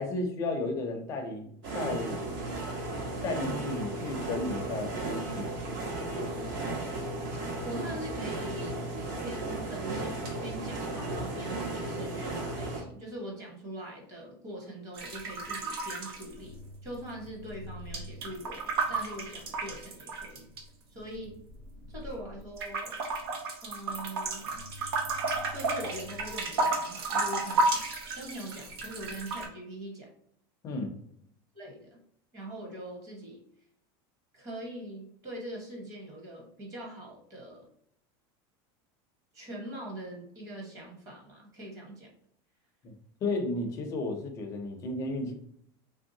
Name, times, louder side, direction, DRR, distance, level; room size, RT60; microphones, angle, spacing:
voice 1, 0.0-2.3 3.2-5.5 30.6-31.0 42.8-42.9 43.2-45.3, left 2 dB, 25° left, 4 dB, 0.5 m, -33 dB
sound 1, 1.6-12.8, right 2 dB, 60° right, 1.0 m, -35 dB
voice 2, 7.6-8.8 9.2-20.4 20.9-21.4 21.9-23.0 23.6-24.7 25.5-27.8 28.2-30.1 31.5-32.0 32.3-33.4 34.3-37.7 39.3-42.1, right 1 dB, 25° right, -2 dB, 1.0 m, -42 dB
sound 2, 14.9-17.0 17.2-20.6 21.2-22.2 22.6-29.5, right 2 dB, 90° right, 0.8 m, -32 dB
3.3 x 2.7 x 2.6 m, 0.68 s
supercardioid pair, 170°, 12 cm